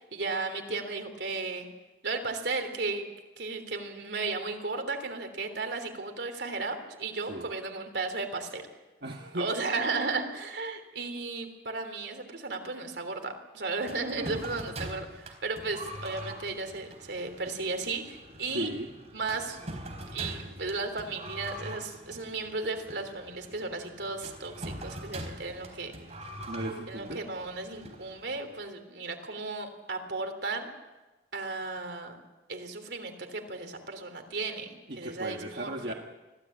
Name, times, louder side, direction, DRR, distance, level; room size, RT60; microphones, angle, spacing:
voice 1, 0.0-1.7 2.0-3.1 3.4-8.7 9.3-18.7 19.1-19.6 20.1-26.0 26.9-30.7 31.3-32.2 32.5-35.9, right 3 dB, 80° right, 6 dB, 3.3 m, -35 dB
voice 2, 9.0-9.5 18.5-18.9 26.5-27.2 34.9-35.9, right 1 dB, 60° right, 1 dB, 1.8 m, -36 dB
sound 1, 13.8-28.5, right 1 dB, 40° right, 4.0 m, -43 dB
24.5 x 16.5 x 8.7 m, 1.1 s
head